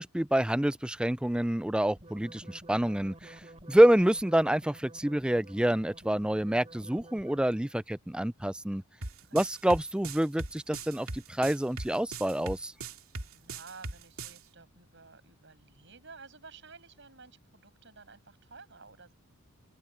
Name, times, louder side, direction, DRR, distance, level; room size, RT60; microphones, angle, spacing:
voice 1, 0.0-3.4 3.7-8.8 9.3-12.7, right 1 dB, 5° right, 0.3 m, -27 dB
sound 1, 2.0-7.7, right 1 dB, 30° right, 3.6 m, -51 dB
sound 2, 9.0-14.4, right 3 dB, 75° right, 2.4 m, -39 dB
voice 2, 13.3-19.1, right 4 dB, 55° right, 6.6 m, -52 dB
open air
head